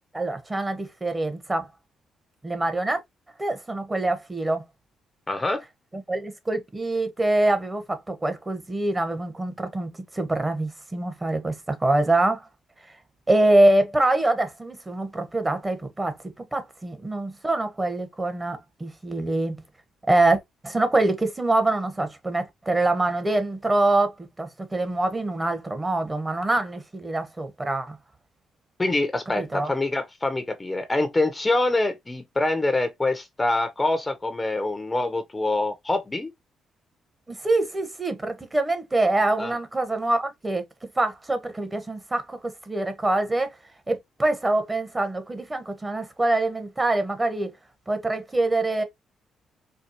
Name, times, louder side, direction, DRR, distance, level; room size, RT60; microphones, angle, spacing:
voice 1, 0.1-1.7 2.4-3.0 3.4-4.6 5.9-12.5 13.3-16.1 16.5-19.6 20.1-28.0 29.4-29.7 37.3-40.6 41.0-42.4 42.7-43.6 43.9-47.5 47.9-48.8, right 2 dB, 20° right, 1.2 m, -24 dB
voice 2, 5.3-5.6 28.8-36.3 39.4-39.5, left 2 dB, 25° left, 0.8 m, -25 dB
4.5 x 2.3 x 2.9 m
supercardioid pair, 60°, 0 cm